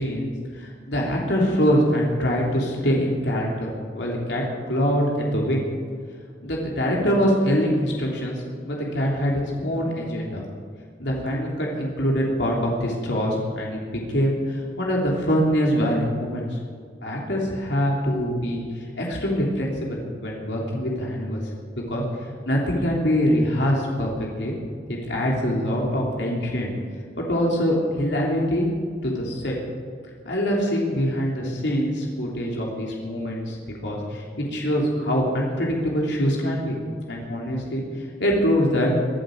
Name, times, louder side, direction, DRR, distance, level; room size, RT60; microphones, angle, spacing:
voice 1, 0.0-5.7 6.4-10.4 11.0-16.6 17.0-18.6 18.9-21.4 21.9-22.0 22.4-24.5 24.9-26.7 27.2-28.7 29.0-29.5 30.2-36.8 37.1-38.9, equal, 85° left, -2 dB, 3.3 m, -24 dB
24.0 x 9.0 x 6.7 m, 2.1 s
head